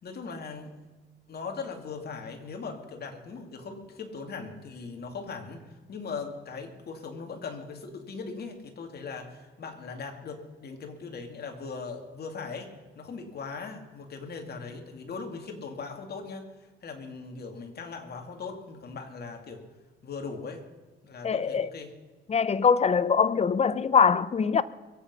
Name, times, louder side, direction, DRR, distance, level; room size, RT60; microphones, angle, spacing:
voice 1, 0.0-0.8 1.3-5.6 5.9-16.5 16.8-19.6 20.0-20.6 21.0-21.9, left 4 dB, 55° left, 2.7 m, -39 dB
voice 2, 21.2-21.7 22.3-24.6, left 6 dB, 35° left, 0.7 m, -23 dB
22.5 x 8.3 x 5.6 m
cardioid pair, 90°, 20 cm